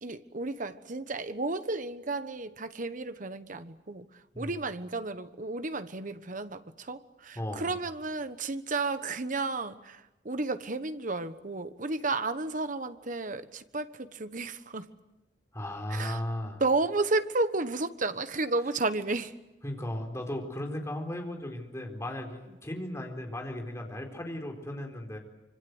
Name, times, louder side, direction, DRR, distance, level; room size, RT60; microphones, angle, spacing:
voice 1, 0.0-4.1 4.4-14.9 15.9-16.2 16.6-19.3, right 3 dB, 45° right, 11 dB, 1.3 m, -32 dB
voice 2, 7.3-7.7 15.5-16.6 19.6-25.2, left 1 dB, 15° left, 2 dB, 4.3 m, -36 dB
26.0 x 25.0 x 8.1 m, 1.0 s
head